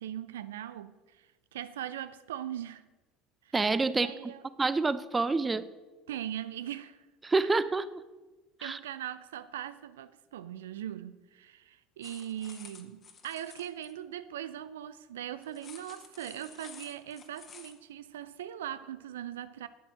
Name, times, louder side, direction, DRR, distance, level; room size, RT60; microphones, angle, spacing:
voice 1, 0.0-2.8 3.4-3.5 3.9-4.4 6.1-7.1 8.6-19.7, right 11 dB, 75° right, 0.4 m, -40 dB
voice 2, 3.5-4.3 4.6-5.7 7.2-8.0 8.6-8.8, right 3 dB, 20° right, 0.6 m, -28 dB
sound 1, 12.0-13.9 15.4-17.8, left 6 dB, 35° left, 1.6 m, -51 dB
9.4 x 9.3 x 6.1 m
figure-of-eight pair, 65°, 0 cm